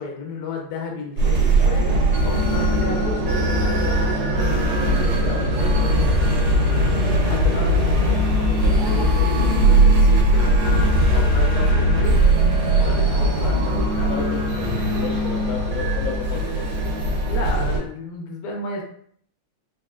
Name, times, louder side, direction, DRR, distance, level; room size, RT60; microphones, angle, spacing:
voice 1, 0.0-5.9 7.2-10.5 11.1-12.2 12.8-14.3 17.3-18.8, left 3 dB, 60° left, 0 dB, 1.0 m, -33 dB
sound 1, 1.2-17.8, right 1 dB, 90° right, 1.7 m, -19 dB
voice 2, 14.0-16.8, left 6 dB, 85° left, -2 dB, 1.7 m, -33 dB
4.2 x 2.9 x 2.4 m, 0.62 s
omnidirectional pair, 2.2 m